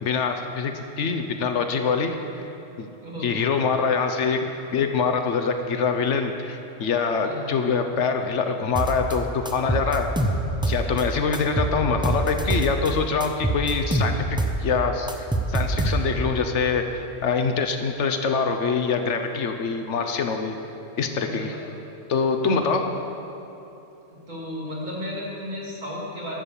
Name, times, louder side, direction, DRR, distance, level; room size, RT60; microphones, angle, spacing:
voice 1, 0.0-0.7 1.0-2.4 2.8-2.9 3.2-10.1 10.6-20.5 21.0-21.5 22.1-22.8, left 5 dB, 70° left, 6 dB, 1.1 m, -24 dB
voice 2, 3.0-3.4 7.2-7.5 10.8-11.0 21.2-21.6 22.4-22.8 24.1-26.4, left 1 dB, 35° right, -6 dB, 2.7 m, -34 dB
sound 1, 8.8-9.2 9.5-11.0 11.3-12.9 13.2-16.3, right 2 dB, 5° right, 0.5 m, -25 dB
12.5 x 7.4 x 6.9 m, 3.0 s
omnidirectional pair, 1.3 m